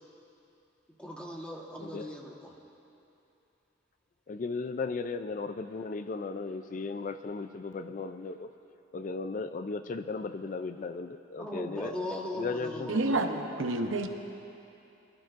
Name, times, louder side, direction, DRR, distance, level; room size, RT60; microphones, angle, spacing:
voice 1, 1.0-2.6 11.4-13.8, left 1 dB, 5° left, -2 dB, 1.3 m, -39 dB
voice 2, 4.3-8.5 8.9-11.9 12.3-13.0, left 4 dB, 40° left, 10 dB, 0.3 m, -36 dB
voice 3, 12.9-14.1, right 2 dB, 80° right, 5 dB, 0.8 m, -29 dB
24.0 x 12.0 x 2.5 m, 2.8 s
head